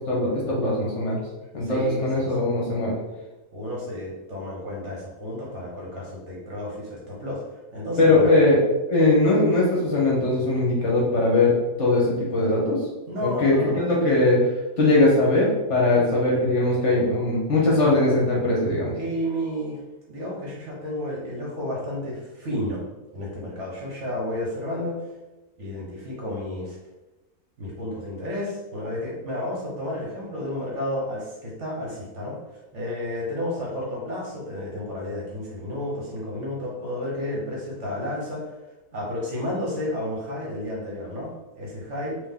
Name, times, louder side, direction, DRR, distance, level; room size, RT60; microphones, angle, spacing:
voice 1, 0.1-1.2 1.5-2.9 8.0-8.6 8.9-12.8 13.2-13.5 13.8-14.4 14.8-18.9, left 2 dB, 55° left, -4 dB, 1.2 m, -20 dB
voice 2, 1.6-2.5 3.5-7.4 7.7-8.3 13.1-13.8 15.9-16.0 18.9-19.8 20.1-22.8 23.1-25.1 25.6-26.8 27.6-32.4 32.7-38.5 38.9-42.2, left 1 dB, 50° right, -3 dB, 1.3 m, -31 dB
3.8 x 2.8 x 3.6 m, 1.1 s
omnidirectional pair, 1.6 m